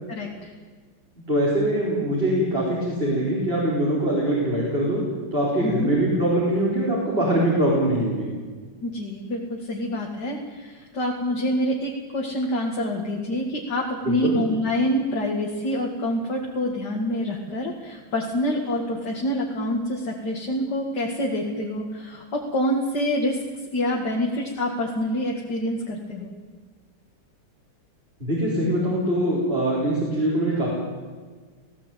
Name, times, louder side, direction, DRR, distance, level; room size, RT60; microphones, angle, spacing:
voice 1, 0.1-0.5 5.6-5.9 8.8-23.4 23.7-26.3, left 1 dB, 55° left, -1 dB, 2.6 m, -26 dB
voice 2, 1.3-5.0 5.3-8.3 14.0-14.4 28.2-30.7, right 1 dB, 30° right, -5 dB, 4.9 m, -23 dB
18.5 x 16.5 x 9.2 m, 1.5 s
omnidirectional pair, 2.2 m